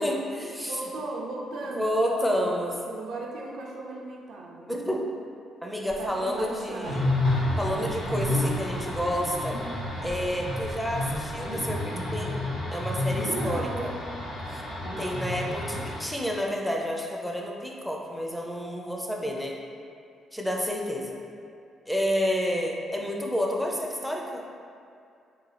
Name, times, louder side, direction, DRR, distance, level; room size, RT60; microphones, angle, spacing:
voice 1, 0.0-0.8 1.7-2.7 4.7-5.1 5.6-7.0 7.6-9.6 10.0-12.5 12.7-13.7 14.5-14.6 15.0-19.5 20.3-21.2 21.9-24.4, equal, ahead, -1 dB, 0.5 m, -29 dB
voice 2, 0.6-4.7 6.0-7.1 13.2-14.0, right 2 dB, 75° right, -3 dB, 0.4 m, -36 dB
Waves surf, 5.9-11.6, left 1 dB, 60° left, 0.9 m, -47 dB
sound 1, 6.8-16.0, left 1 dB, 85° left, 1.1 m, -30 dB
3.7 x 2.3 x 3.3 m, 2.4 s
cardioid pair, 90°, 0 cm